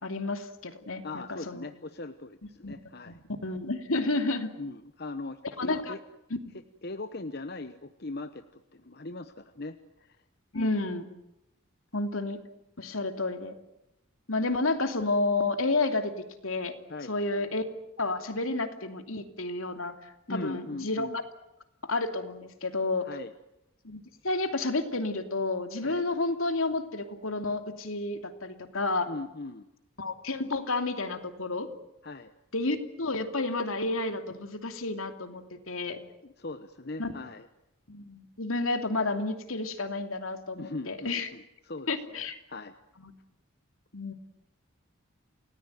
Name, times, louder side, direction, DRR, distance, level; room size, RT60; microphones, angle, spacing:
voice 1, 0.0-1.7 2.6-2.7 3.1-3.2 3.4-4.5 5.6-5.9 10.5-11.1 11.9-12.4 12.8-13.5 14.3-16.1 16.4-16.7 17.1-17.6 18.0-21.1 21.8-23.1 23.8-29.1 30.0-31.7 32.5-36.0 37.0-37.1 37.9-41.3 41.9-42.4 43.0-43.1 43.9-44.1, left 2 dB, 75° left, 7 dB, 2.8 m, -30 dB
voice 2, 1.0-3.2 4.6-6.0 6.8-10.2 10.5-10.7 16.9-17.1 20.3-21.2 23.0-23.3 25.8-26.0 29.1-29.7 32.0-32.3 36.2-37.5 40.6-42.7, left 2 dB, 50° left, 10 dB, 1.0 m, -40 dB
29.0 x 19.0 x 9.3 m, 0.87 s
head